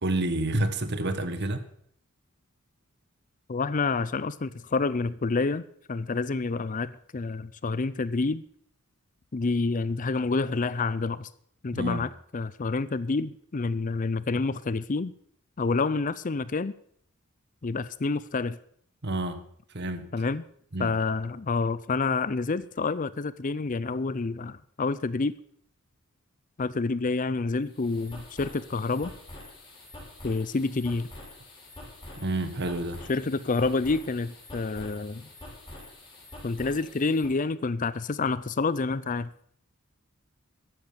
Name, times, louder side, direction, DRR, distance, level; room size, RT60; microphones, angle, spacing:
voice 1, 0.0-1.6 11.7-12.0 19.0-19.5 19.7-20.1 20.7-20.9 32.2-33.0, right 1 dB, 50° right, 1.5 m, -29 dB
voice 2, 3.5-5.6 5.9-8.4 9.3-11.3 11.6-15.1 15.6-16.7 17.6-18.6 20.1-20.4 20.8-25.3 26.6-29.1 30.2-31.1 33.1-35.3 36.4-39.3, left 3 dB, 35° left, 0.5 m, -28 dB
sound 1, 27.6-37.4, left 1 dB, 20° left, 5.8 m, -46 dB
13.5 x 10.5 x 6.9 m
head